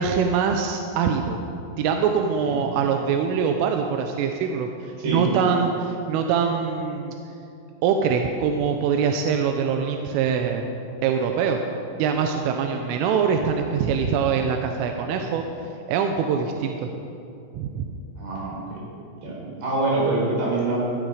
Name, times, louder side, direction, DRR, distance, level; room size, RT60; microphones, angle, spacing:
voice 1, 0.0-1.4 1.8-7.1 7.8-10.6 11.0-11.6 12.0-15.4 15.9-16.9 17.5-17.9, right 6 dB, 90° right, 4 dB, 3.4 m, -23 dB
voice 2, 18.2-18.8 19.2-20.8, right 2 dB, 55° right, -4 dB, 6.1 m, -25 dB
18.5 x 13.0 x 4.9 m, 2.6 s
omnidirectional pair, 5.6 m